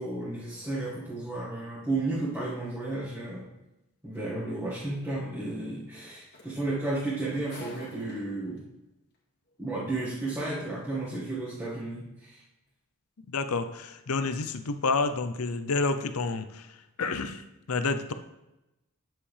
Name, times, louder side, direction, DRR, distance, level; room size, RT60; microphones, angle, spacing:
voice 1, 0.0-3.5 4.0-8.6 9.6-12.4, right 2 dB, 10° right, -10 dB, 1.7 m, -33 dB
sound 1, 4.2-4.3 6.0-6.1 6.3-8.6 9.5-9.6, left 2 dB, 50° left, 2.0 m, -48 dB
voice 2, 13.3-16.7 17.0-17.4 17.7-18.1, left 3 dB, 75° left, 10 dB, 0.6 m, -29 dB
9.9 x 7.6 x 3.3 m, 0.96 s
head